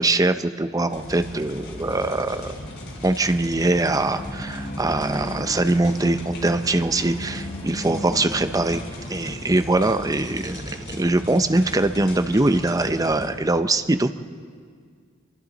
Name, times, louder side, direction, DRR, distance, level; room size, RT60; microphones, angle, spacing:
voice 1, 0.0-2.6 3.0-8.8 9.1-14.1, right 2 dB, 15° right, 9 dB, 0.6 m, -22 dB
sound 1, 0.9-13.3, left 1 dB, 55° left, 4.5 m, -37 dB
sound 2, 3.8-9.6, left 1 dB, 35° left, 3.0 m, -36 dB
27.0 x 23.5 x 4.1 m, 2.1 s
head